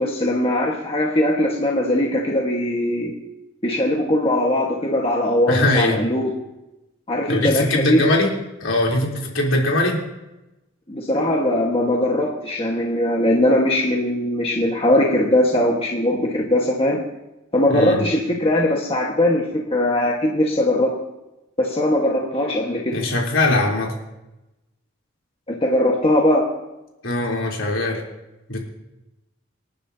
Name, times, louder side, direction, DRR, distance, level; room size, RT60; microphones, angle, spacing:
voice 1, 0.0-3.1 3.6-6.3 7.1-8.0 10.9-17.0 17.5-21.0 21.6-23.0 25.5-26.5, left 1 dB, 30° left, -1 dB, 1.5 m, -20 dB
voice 2, 5.5-6.0 7.3-8.3 8.6-10.0 17.7-18.0 22.9-23.9 27.0-28.0 28.5-28.6, left 2 dB, 70° left, -2 dB, 3.6 m, -21 dB
26.5 x 10.5 x 2.8 m, 0.97 s
head